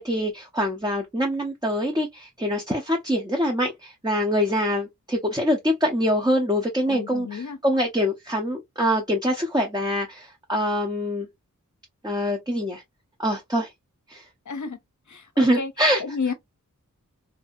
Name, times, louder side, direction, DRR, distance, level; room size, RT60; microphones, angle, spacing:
voice 1, 0.0-11.3 12.0-12.8 13.2-13.7 14.1-14.2 15.4-16.0, equal, 10° right, 0.7 m, -24 dB
voice 2, 6.9-7.6 14.5-14.8 15.1-15.7 16.0-16.3, left 5 dB, 60° left, 0.7 m, -31 dB
2.7 x 2.7 x 2.4 m
wide cardioid pair, 45°, 33 cm